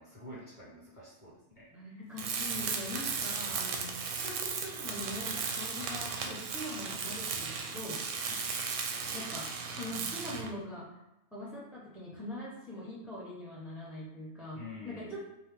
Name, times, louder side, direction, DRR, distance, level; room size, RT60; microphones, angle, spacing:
voice 1, 0.0-1.7 8.3-8.5 14.5-15.2, left 2 dB, 20° left, -8 dB, 1.6 m, -48 dB
voice 2, 1.7-3.9 4.2-8.0 9.1-9.5 9.8-10.9 11.3-15.2, left 1 dB, ahead, -8 dB, 0.5 m, -42 dB
Tools, 2.2-10.6, right 5 dB, 70° right, 0.8 m, -36 dB
4.7 x 2.2 x 3.4 m, 0.90 s
omnidirectional pair, 1.5 m